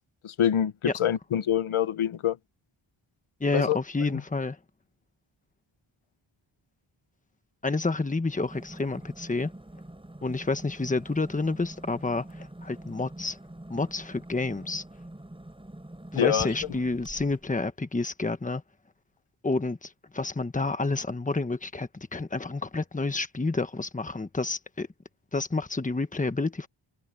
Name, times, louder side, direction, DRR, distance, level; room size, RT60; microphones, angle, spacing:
voice 1, 0.2-2.4 3.5-3.8 16.1-16.5, left 9 dB, 80° left, 1.0 m, -25 dB
voice 2, 3.4-4.6 7.6-9.5 10.2-13.4 13.7-14.8 16.1-18.6 19.4-24.9 25.3-26.7, left 3 dB, 15° left, 1.2 m, -29 dB
sound 1, 8.3-17.5, right 1 dB, 10° right, 5.0 m, -45 dB
wide cardioid pair, 160°, 49 cm